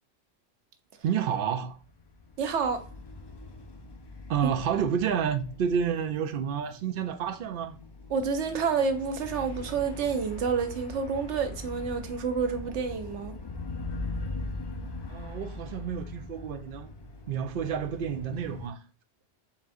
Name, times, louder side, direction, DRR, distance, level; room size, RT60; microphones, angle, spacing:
voice 1, 1.0-1.8 4.3-7.8 15.1-16.9 17.3-18.8, right 7 dB, 60° right, 0.6 m, -30 dB
sound 1, 1.8-18.7, left 2 dB, 40° left, 0.3 m, -41 dB
voice 2, 2.4-2.8 8.1-13.4, right 5 dB, 85° right, 1.0 m, -29 dB
4.2 x 3.6 x 2.5 m
omnidirectional pair, 1.2 m